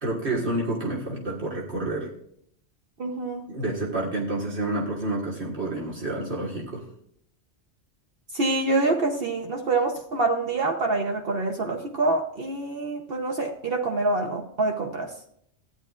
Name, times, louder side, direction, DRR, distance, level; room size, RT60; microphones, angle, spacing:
voice 1, 0.0-2.1 3.5-6.8, right 2 dB, 80° right, -3 dB, 2.0 m, -29 dB
voice 2, 3.0-3.5 8.3-15.1, right 2 dB, 60° right, 2 dB, 1.1 m, -26 dB
15.0 x 9.9 x 2.4 m, 0.69 s
omnidirectional pair, 1.1 m